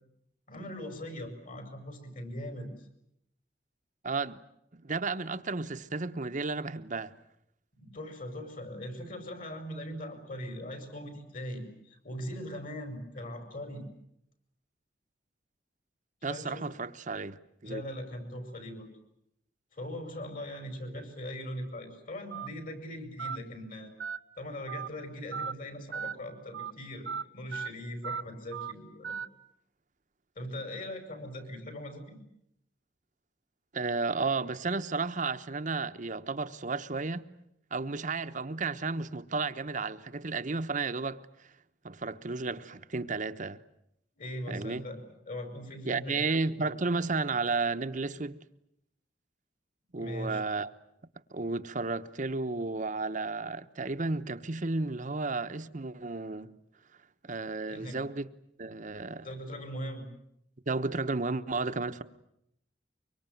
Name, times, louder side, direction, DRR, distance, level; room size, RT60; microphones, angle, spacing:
voice 1, 0.5-2.7 7.8-13.8 16.3-16.6 17.6-18.9 19.7-23.9 24.4-29.2 30.4-32.2 44.2-46.6 50.0-50.4 57.7-58.0 59.2-60.0, left 1 dB, 50° left, 5.7 m, -40 dB
voice 2, 4.0-4.4 4.7-7.1 16.2-17.8 33.7-37.3 37.7-41.2 41.8-43.6 44.5-44.8 45.8-48.4 49.9-50.7 51.3-56.5 57.2-58.3 58.6-59.3 60.7-62.0, right 3 dB, 45° right, 1.0 m, -33 dB
Telephone, 22.3-22.5 23.2-23.4 24.0-24.2 24.7-24.9 25.3-25.5 25.9-26.1 26.5-26.7 27.1-27.2 27.5-27.7 28.0-28.2 28.5-28.7 29.0-29.3, right 6 dB, 75° right, 1.0 m, -36 dB
24.0 x 24.0 x 9.2 m
head